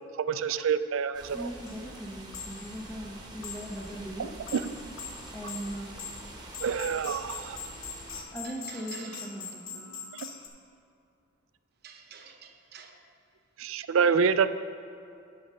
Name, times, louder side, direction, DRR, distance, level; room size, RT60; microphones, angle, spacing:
voice 1, 0.3-1.5 4.2-4.6 6.6-7.6 13.6-14.5, right 6 dB, 70° right, 13 dB, 0.4 m, -27 dB
sound 1, 1.1-8.2, right 1 dB, 20° right, 1.0 m, -46 dB
voice 2, 1.3-4.3 5.3-6.0 8.3-9.9, equal, 10° left, -4 dB, 0.6 m, -39 dB
sound 2, 1.7-1.8 2.3-2.8 3.4-3.9 4.2-10.5, left 6 dB, 70° left, 0.9 m, -42 dB
voice 3, 8.4-9.2 11.8-12.9, right 7 dB, 50° right, 4 dB, 0.8 m, -48 dB
9.6 x 6.3 x 5.3 m, 2.6 s
head